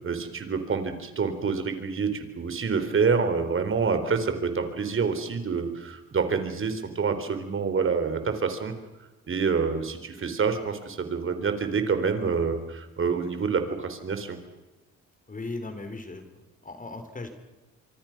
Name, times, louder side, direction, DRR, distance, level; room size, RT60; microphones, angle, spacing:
voice 1, 0.0-8.7 9.3-14.4, right 5 dB, 45° right, 9 dB, 4.2 m, -27 dB
voice 2, 15.3-16.2 16.6-17.3, left 3 dB, 25° left, 8 dB, 4.3 m, -37 dB
26.0 x 24.5 x 6.2 m, 1.1 s
cardioid pair, 90°, 30 cm